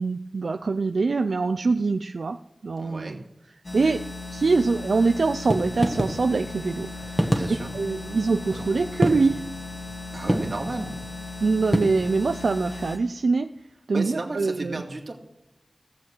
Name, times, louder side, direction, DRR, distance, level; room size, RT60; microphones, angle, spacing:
voice 1, 0.0-2.4 2.6-3.2 3.7-4.0 4.3-7.3 7.7-9.5 11.4-13.5 13.9-14.8, right 4 dB, 85° right, 7 dB, 0.4 m, -24 dB
voice 2, 2.8-3.2 7.3-7.7 10.1-10.9 13.9-15.1, right 2 dB, 55° right, 2 dB, 2.2 m, -33 dB
sound 1, 3.6-13.0, left 3 dB, 50° left, 2.5 m, -37 dB
sound 2, 5.3-11.8, equal, ahead, 1.5 m, -28 dB
16.5 x 7.3 x 6.3 m, 0.89 s
wide cardioid pair, 80°, 0 cm